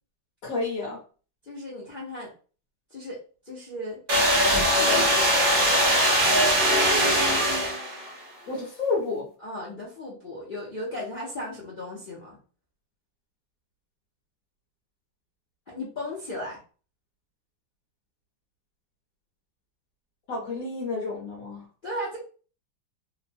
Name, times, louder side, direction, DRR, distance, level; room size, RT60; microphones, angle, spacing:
voice 1, 0.4-1.0 8.5-9.3 20.3-21.6, left 3 dB, 60° left, -3 dB, 0.9 m, -30 dB
voice 2, 1.4-2.3 2.9-3.2 3.4-4.0 4.4-5.3 9.4-12.4 15.7-16.6 21.8-22.2, left 1 dB, 80° left, -6 dB, 0.4 m, -36 dB
sound 1, 4.1-8.1, equal, 75° right, 0.5 m, -21 dB
3.1 x 2.1 x 2.6 m, 0.38 s
omnidirectional pair, 2.1 m